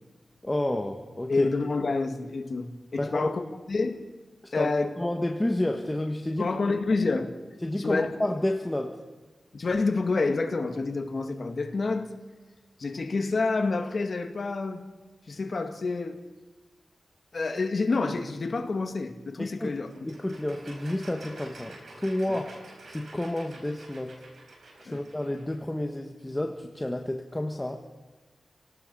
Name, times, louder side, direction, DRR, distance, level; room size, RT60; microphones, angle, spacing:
voice 1, 0.4-1.5 3.0-3.3 4.5-4.7 5.0-6.6 7.6-9.0 19.4-19.7 20.0-22.5 22.8-24.2 24.8-27.8, left 1 dB, 15° left, 3 dB, 1.5 m, -30 dB
voice 2, 1.3-3.4 3.7-4.0 4.5-4.9 6.4-7.3 7.8-8.2 9.5-12.1 12.8-14.8 15.3-16.2 17.3-19.9 24.9-25.0, left 3 dB, 60° left, 4 dB, 2.1 m, -28 dB
sound 1, 19.9-25.5, right 2 dB, 90° right, 5.2 m, -48 dB
28.5 x 18.0 x 5.6 m, 1.3 s
wide cardioid pair, 80°, 0 cm